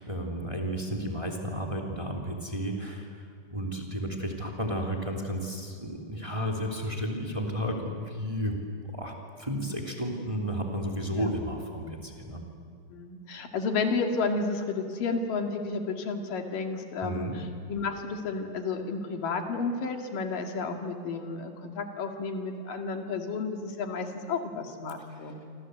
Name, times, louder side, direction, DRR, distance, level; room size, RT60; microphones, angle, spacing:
voice 1, 0.0-3.3 3.5-12.4 17.0-17.4 25.1-25.3, equal, 10° right, 1 dB, 2.8 m, -33 dB
voice 2, 12.9-17.3 17.7-25.4, left 4 dB, 90° left, 4 dB, 3.9 m, -32 dB
27.5 x 26.5 x 8.0 m, 2.3 s
omnidirectional pair, 3.8 m